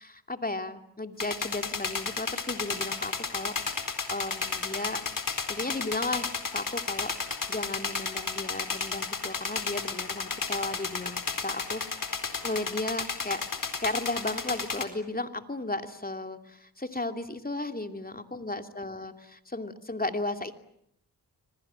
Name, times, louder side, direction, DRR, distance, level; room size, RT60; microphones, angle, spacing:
voice 1, 0.0-3.5 4.1-5.0 5.5-13.4 13.8-20.5, left 2 dB, 20° left, 7 dB, 2.7 m, -35 dB
sound 1, 1.2-14.8, left 4 dB, 50° left, 4.2 m, -33 dB
26.0 x 22.5 x 8.9 m, 0.73 s
cardioid pair, 60°, 41 cm